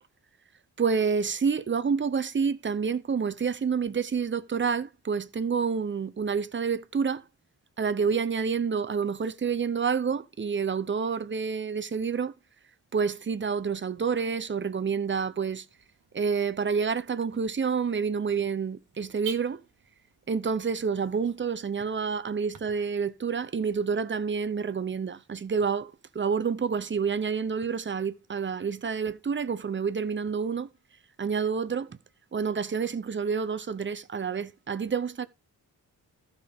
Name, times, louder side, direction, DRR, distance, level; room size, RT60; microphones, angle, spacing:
voice 1, 0.8-7.2 7.8-12.3 12.9-15.7 16.1-19.6 20.3-30.7 31.2-32.0 32.3-35.3, right 6 dB, 30° right, 0.6 m, -28 dB
Car / Alarm, 13.4-22.6, right 7 dB, 50° right, 1.4 m, -50 dB
14.5 x 5.2 x 3.5 m
wide cardioid pair, 110°, 39 cm